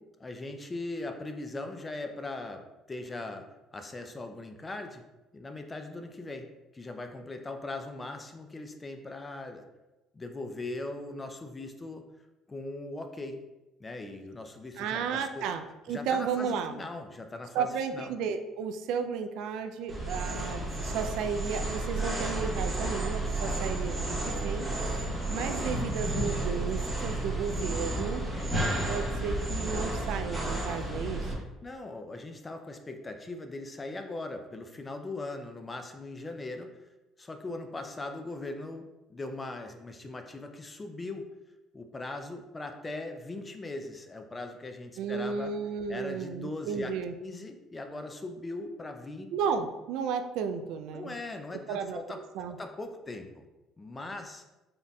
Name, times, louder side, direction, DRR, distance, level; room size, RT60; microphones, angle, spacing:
voice 1, 0.2-3.5 3.7-5.0 5.3-6.5 6.7-9.7 10.1-12.0 12.5-13.4 13.8-15.5 15.9-18.1 31.6-36.7 37.2-41.3 41.7-45.5 45.9-49.3 50.9-52.2 52.5-53.4 53.8-54.4, left 2 dB, 20° left, 5 dB, 0.4 m, -40 dB
voice 2, 14.8-16.8 17.5-24.9 25.3-28.2 28.9-31.3 45.0-47.1 49.3-51.1 51.7-52.0 52.3-52.6, right 6 dB, 75° right, 7 dB, 0.3 m, -33 dB
sound 1, 19.9-31.3, right 2 dB, 5° right, 1.0 m, -32 dB
3.9 x 3.6 x 2.2 m, 1.0 s
cardioid pair, 125°, 0 cm